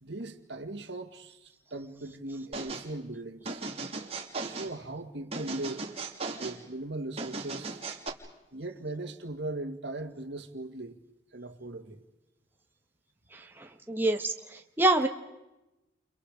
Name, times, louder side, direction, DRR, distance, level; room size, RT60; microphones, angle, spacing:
voice 1, 0.0-3.6 4.4-5.9 6.4-7.8 8.5-11.0 11.3-12.0, right 2 dB, 70° right, 2.0 m, -39 dB
sound 1, 2.5-2.9 3.5-4.7 5.3-6.6 7.2-8.1, right 3 dB, 35° right, 2.7 m, -37 dB
voice 2, 13.3-15.1, right 2 dB, 10° right, 1.2 m, -27 dB
30.0 x 29.5 x 5.0 m
head